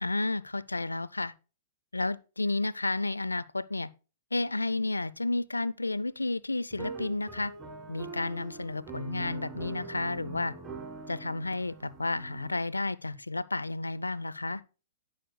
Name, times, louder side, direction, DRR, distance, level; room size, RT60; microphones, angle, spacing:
voice 1, 0.0-1.3 1.9-3.9 4.3-7.5 7.9-10.5 11.1-14.6, left 2 dB, 90° left, 0.5 m, -31 dB
sound 1, 6.7-12.6, right 4 dB, 20° right, 2.2 m, -43 dB
17.5 x 6.5 x 2.2 m
figure-of-eight pair, 105°, 0 cm